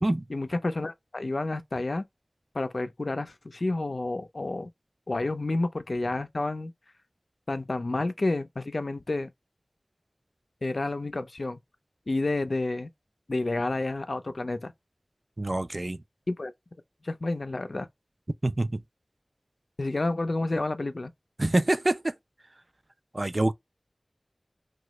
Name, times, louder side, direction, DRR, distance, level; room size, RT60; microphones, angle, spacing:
voice 1, 0.3-2.0 2.5-4.7 5.1-6.7 7.5-9.3 10.6-11.6 12.1-12.9 13.3-14.7 16.3-16.5 17.0-17.9 19.8-21.1, left 2 dB, 80° left, 0.4 m, -30 dB
voice 2, 15.4-16.0 18.4-18.8 21.4-22.1 23.1-23.5, right 1 dB, 50° right, 0.4 m, -26 dB
2.9 x 2.3 x 3.0 m
wide cardioid pair, 45°, 0 cm